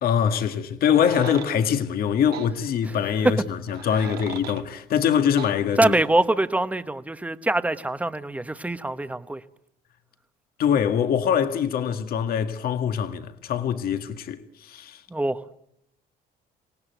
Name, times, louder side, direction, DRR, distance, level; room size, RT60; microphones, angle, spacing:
voice 1, 0.0-5.9 10.6-15.0, left 8 dB, 60° left, 1.8 m, -23 dB
sound 1, 0.8-1.5 2.3-2.5 3.7-4.6 5.4-5.5, right 10 dB, 70° right, 1.9 m, -38 dB
voice 2, 5.8-9.4 15.1-15.6, right 2 dB, 10° right, 1.1 m, -24 dB
26.5 x 18.5 x 9.2 m
cardioid pair, 110°, 17 cm